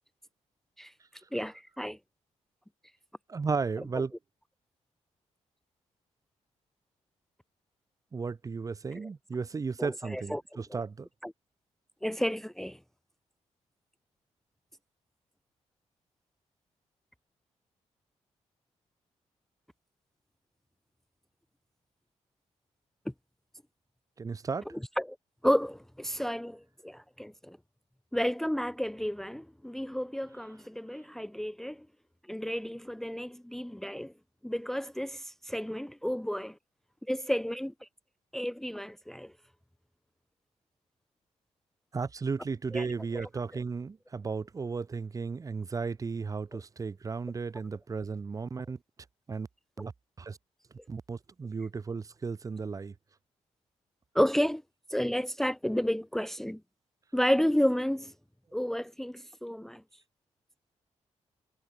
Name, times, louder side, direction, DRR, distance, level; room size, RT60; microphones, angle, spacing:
voice 1, 1.3-2.0 9.0-9.1 9.8-10.8 11.2-11.3 12.0-12.8 25.0-25.2 25.4-27.6 28.1-31.9 32.3-34.1 34.4-36.6 37.1-37.9 38.3-39.3 42.7-42.9 43.2-43.3 46.5-46.6 54.1-54.6 54.9-56.6 57.1-58.1 58.5-59.8, equal, 5° left, 0.8 m, -31 dB
voice 2, 3.3-4.1 8.1-11.1 24.2-24.7 41.9-48.8 49.3-49.5 49.8-49.9 50.2-50.4 50.9-52.9, right 4 dB, 30° right, 1.2 m, -34 dB
wide cardioid pair, 150°, 12 cm